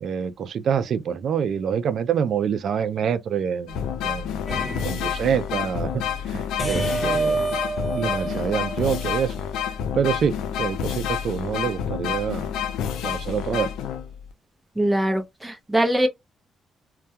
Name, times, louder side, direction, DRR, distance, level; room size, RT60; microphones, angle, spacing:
voice 1, 0.0-4.3 4.8-6.0 6.3-7.5 7.9-9.3 9.9-12.5 13.0-13.7, right 7 dB, 65° right, 0.3 m, -26 dB
sound 1, 3.7-14.3, left 8 dB, 85° left, 0.4 m, -29 dB
sound 2, 4.5-5.4 6.6-9.4, right 2 dB, 40° left, 1.0 m, -28 dB
voice 2, 14.8-16.1, right 1 dB, 15° right, 0.6 m, -22 dB
2.2 x 2.2 x 2.7 m
cardioid pair, 75°, 0 cm